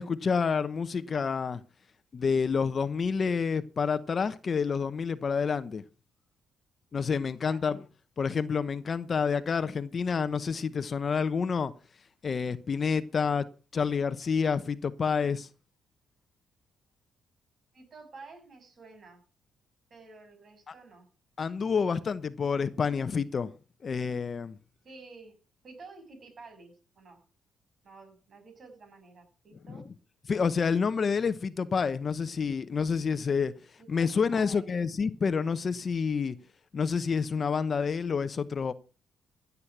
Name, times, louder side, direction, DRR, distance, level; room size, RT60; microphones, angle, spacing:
voice 1, 0.0-1.6 2.1-5.8 6.9-7.8 8.2-11.7 12.2-13.5 13.7-15.5 21.4-23.5 23.8-24.6 29.7-29.8 30.3-33.5 33.9-36.4 36.7-38.7, left 5 dB, 40° left, 0.9 m, -28 dB
voice 2, 17.7-19.2 19.9-21.1 24.8-25.4 25.6-27.2 27.8-29.8 33.8-34.6, right 3 dB, 50° right, 6.7 m, -51 dB
15.5 x 8.3 x 6.1 m
cardioid pair, 90°, 0 cm